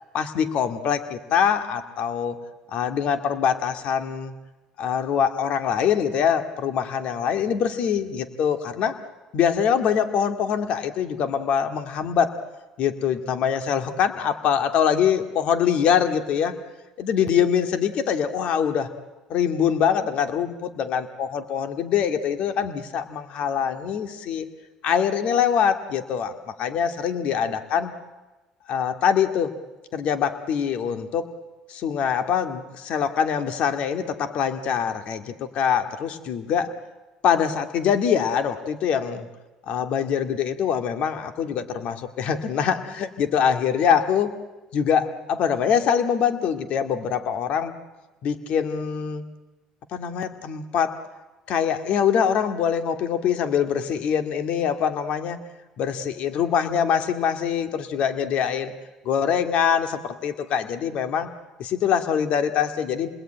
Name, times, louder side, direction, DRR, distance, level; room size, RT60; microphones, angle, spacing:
voice 1, 0.1-2.4 2.7-4.3 4.8-9.0 9.3-12.3 12.8-16.6 17.0-18.9 19.3-24.5 24.8-27.9 28.7-29.6 29.9-31.3 31.7-36.7 37.2-39.3 39.7-44.3 44.7-47.7 48.2-49.2 49.9-51.0 51.5-55.4 55.8-58.7 59.0-61.3 61.6-63.1, left 8 dB, 65° left, 7 dB, 2.1 m, -24 dB
29.0 x 20.5 x 9.0 m, 1.1 s
supercardioid pair, 90°, 2 cm